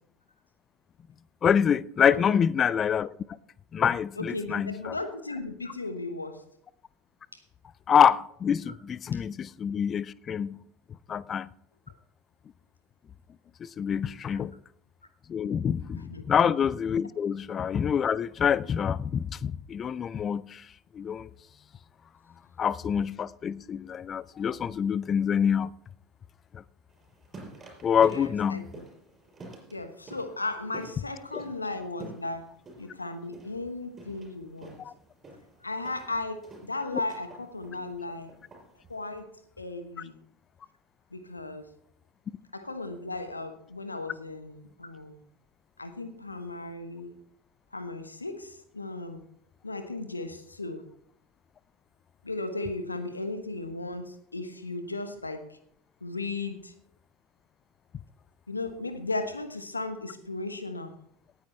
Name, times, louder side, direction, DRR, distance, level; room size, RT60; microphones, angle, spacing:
voice 1, 1.4-3.1 3.7-4.9 7.9-10.6 11.1-11.5 13.6-14.5 15.3-20.7 20.9-21.3 22.6-25.7 26.5-26.6 27.8-28.7 31.3-31.4 34.9-35.0, left 8 dB, 35° left, 0.4 m, -26 dB
voice 2, 2.0-2.4 4.1-6.4 7.3-7.4 9.1-9.2 14.2-14.5 15.4-15.5 16.0-16.2 27.9-28.8 29.7-32.5 32.8-34.8 35.6-38.3 38.9-39.3 39.6-40.2 41.1-41.7 42.5-45.2 45.8-47.1 47.7-49.2 49.6-50.9 52.2-55.6 56.0-56.7 58.5-61.0, left 2 dB, 90° left, 1.1 m, -36 dB
sound 1, 26.9-39.2, right 2 dB, 25° right, 5.3 m, -49 dB
18.5 x 9.4 x 3.2 m
figure-of-eight pair, 75°, 0 cm